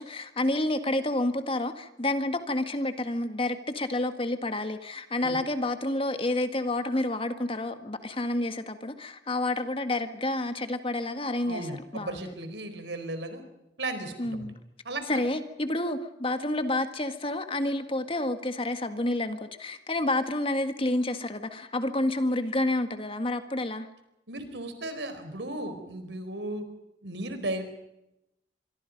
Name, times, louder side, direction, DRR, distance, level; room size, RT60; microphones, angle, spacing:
voice 1, 0.0-11.7 11.9-12.3 14.2-14.6 15.1-23.9, left 1 dB, 30° left, 8 dB, 1.8 m, -29 dB
voice 2, 11.4-13.4 13.8-14.5 14.8-15.3 24.3-26.6 27.0-27.8, right 1 dB, 80° right, 9 dB, 4.5 m, -35 dB
25.5 x 24.0 x 5.3 m, 0.87 s
head